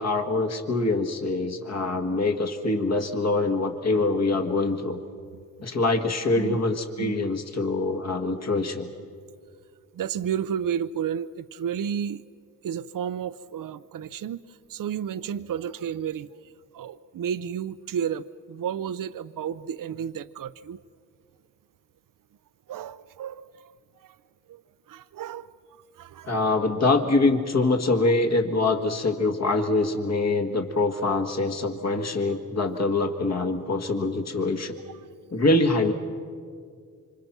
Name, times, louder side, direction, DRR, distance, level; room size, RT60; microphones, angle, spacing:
voice 1, 0.0-5.0 5.6-8.9 26.3-34.8 35.3-35.9, left 2 dB, 50° left, 5 dB, 1.8 m, -24 dB
voice 2, 9.9-12.2 12.6-20.8 22.7-23.7 24.0-24.2 24.5-24.6 24.9-26.3, right 8 dB, 70° right, 15 dB, 0.6 m, -32 dB
26.0 x 26.0 x 6.0 m, 2.1 s
cardioid pair, 80°, 34 cm